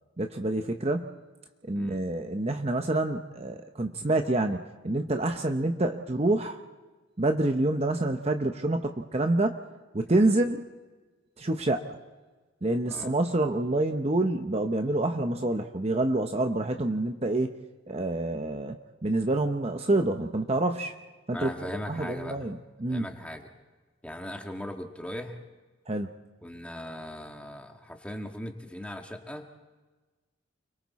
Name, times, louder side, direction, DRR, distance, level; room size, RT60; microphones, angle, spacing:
voice 1, 0.2-1.1 1.6-6.6 7.2-9.6 9.9-10.7 11.4-11.9 12.6-17.5 17.9-18.8 19.0-21.0 21.3-21.5 21.9-23.1 25.9-26.1, right 2 dB, 30° right, 5 dB, 0.8 m, -27 dB
voice 2, 21.3-22.4 22.9-23.5 24.0-25.4 26.4-29.5, left 1 dB, 5° left, 3 dB, 1.6 m, -39 dB
29.5 x 23.0 x 4.2 m, 1.3 s
head